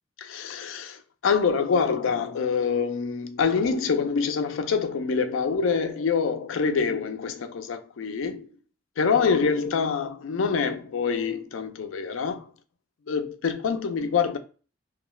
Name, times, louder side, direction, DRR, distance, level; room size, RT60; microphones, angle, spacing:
voice 1, 0.2-8.5 9.0-12.5 13.1-14.4, left 5 dB, 85° left, 0.4 m, -25 dB
2.4 x 2.2 x 3.0 m
head